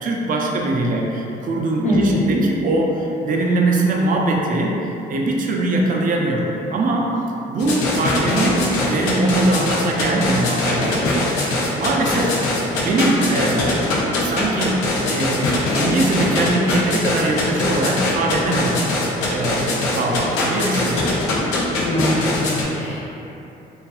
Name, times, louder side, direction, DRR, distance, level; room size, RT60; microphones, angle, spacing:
voice 1, 0.0-4.8 5.1-7.1 7.5-11.2 11.7-12.4 12.8-14.8 15.1-18.8 19.3-21.1, right 2 dB, 40° right, -1 dB, 0.4 m, -21 dB
voice 2, 1.8-2.4 21.8-23.2, equal, 35° left, -5 dB, 0.7 m, -22 dB
sound 1, 7.6-22.6, left 2 dB, 85° left, 0.4 m, -22 dB
2.5 x 2.4 x 2.3 m, 2.9 s
supercardioid pair, 60°, 21 cm